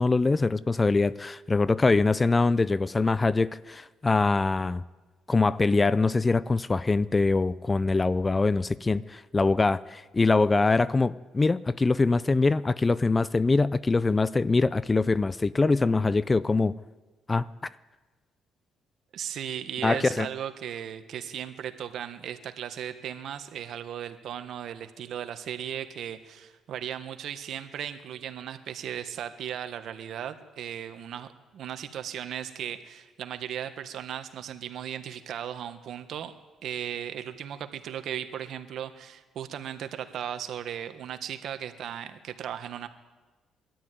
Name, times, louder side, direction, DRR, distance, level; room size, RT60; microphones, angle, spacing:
voice 1, 0.0-4.8 5.3-16.7 17.3-17.5 19.8-20.3, left 3 dB, 25° left, 0.5 m, -23 dB
voice 2, 19.1-36.3 36.6-42.9, right 9 dB, 70° right, 1.5 m, -36 dB
21.5 x 13.5 x 9.4 m
cardioid pair, 90°, 0 cm